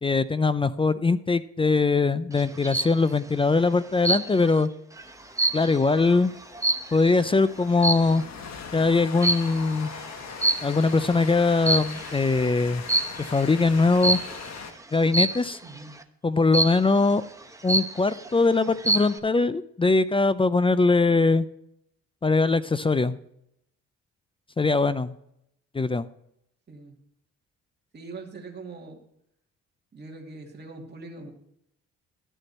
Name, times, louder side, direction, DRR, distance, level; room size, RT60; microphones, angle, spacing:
voice 1, 0.0-4.7 5.5-6.3 6.9-8.2 8.7-9.9 10.6-12.8 13.2-14.2 14.9-15.6 16.2-17.2 17.6-21.5 22.2-23.2 24.6-25.1 25.7-26.1, left 3 dB, 20° left, 15 dB, 0.5 m, -22 dB
sound 1, 2.4-3.0 4.0-4.6 5.0-7.2 7.8-8.2 9.2-9.6 10.4-11.0 11.5-12.2 12.9-13.3 14.0-14.4 15.1-15.6 16.5-17.0 17.4-17.5 17.7-18.3 18.7-19.2, right 2 dB, 10° right, 0.9 m, -25 dB
Train, 5.0-14.7, left 5 dB, 60° left, 1.5 m, -41 dB
voice 2, 15.6-15.9 26.7-27.0 27.9-29.0 29.9-31.3, right 3 dB, 35° right, 1 dB, 2.5 m, -42 dB
12.5 x 6.7 x 4.2 m, 0.76 s
cardioid pair, 90°, 30 cm